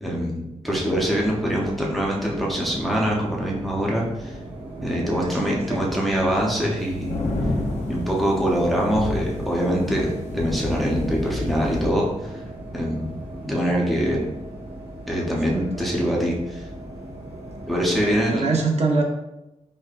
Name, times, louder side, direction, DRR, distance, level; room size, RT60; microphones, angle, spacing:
voice 1, 0.0-4.4 4.8-7.2 7.9-12.3 12.7-13.1 13.4-14.2 15.1-16.6 17.7-18.4, equal, ahead, -4 dB, 0.6 m, -24 dB
sound 1, 0.6-18.4, right 1 dB, 40° right, 0.9 m, -38 dB
voice 2, 4.7-6.0 15.1-16.0 17.9-19.0, right 3 dB, 60° right, 0 dB, 0.5 m, -27 dB
sound 2, 6.8-11.9, left 2 dB, 60° left, 0.5 m, -29 dB
5.1 x 2.1 x 2.4 m, 0.95 s
wide cardioid pair, 170°, 13 cm